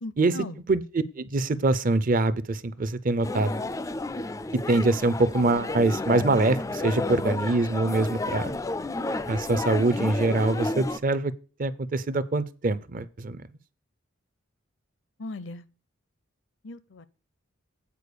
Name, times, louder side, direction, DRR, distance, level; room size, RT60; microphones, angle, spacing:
voice 1, 0.0-0.6 15.2-15.7 16.6-17.1, left 2 dB, 60° left, 0.6 m, -38 dB
voice 2, 0.7-3.6 4.7-8.5 9.3-11.3 11.6-13.4, right 2 dB, 40° right, 0.5 m, -24 dB
sound 1, 3.2-11.0, left 2 dB, 15° left, 0.3 m, -31 dB
8.4 x 4.4 x 6.7 m
head